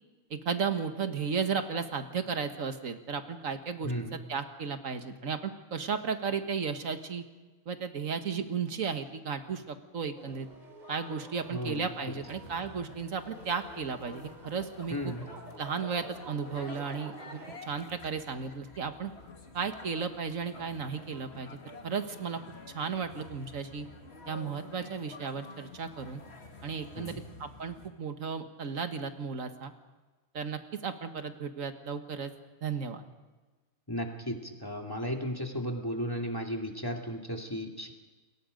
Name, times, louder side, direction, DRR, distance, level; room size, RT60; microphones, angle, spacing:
voice 1, 0.3-7.2 7.7-10.5 10.9-15.1 15.6-19.1 19.5-21.6 21.8-22.4 22.7-23.9 24.3-26.2 26.6-29.7 30.3-32.3 32.6-33.0, right 6 dB, 80° right, 8 dB, 1.8 m, -34 dB
voice 2, 3.8-4.2 11.5-11.9 14.9-15.3 27.0-27.2 33.9-37.9, equal, 15° left, 2 dB, 2.3 m, -35 dB
sound 1, 10.2-17.6, right 1 dB, 35° right, 3.0 m, -50 dB
sound 2, 12.2-27.9, left 3 dB, 55° left, 2.3 m, -50 dB
28.5 x 22.5 x 5.2 m, 1.3 s
omnidirectional pair, 1.4 m